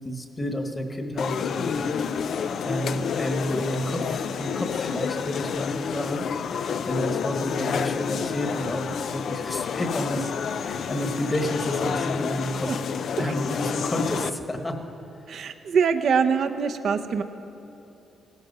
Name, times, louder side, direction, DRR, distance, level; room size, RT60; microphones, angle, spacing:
voice 1, 0.0-1.8 2.6-6.3 6.5-10.3 10.6-12.7 13.2-14.8, left 1 dB, 20° left, 5 dB, 1.4 m, -30 dB
sound 1, 1.2-14.3, left 7 dB, 60° left, 0.4 m, -29 dB
voice 2, 15.3-17.2, right 6 dB, 65° right, 7 dB, 0.7 m, -24 dB
17.5 x 13.0 x 5.5 m, 2.8 s
cardioid pair, 125°, 0 cm